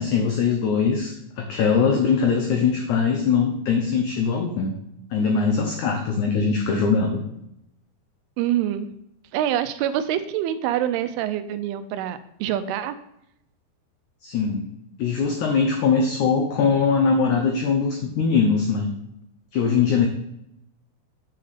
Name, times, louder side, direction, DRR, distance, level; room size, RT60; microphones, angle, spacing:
voice 1, 0.0-4.7 5.1-7.2 14.2-14.7 15.0-18.9 19.5-20.1, left 5 dB, 85° left, 3 dB, 1.7 m, -21 dB
voice 2, 8.4-8.9 9.3-13.0, right 11 dB, 85° right, 11 dB, 2.6 m, -25 dB
7.5 x 6.7 x 4.1 m, 0.80 s
omnidirectional pair, 4.5 m